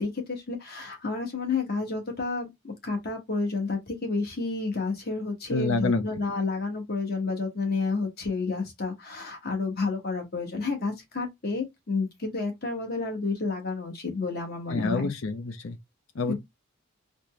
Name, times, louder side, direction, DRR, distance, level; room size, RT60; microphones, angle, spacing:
voice 1, 0.0-15.1 16.3-16.4, left 3 dB, 45° left, 1.3 m, -30 dB
voice 2, 5.5-6.0 14.7-15.8 16.1-16.3, left 3 dB, 70° left, 0.6 m, -27 dB
4.2 x 2.1 x 3.2 m
head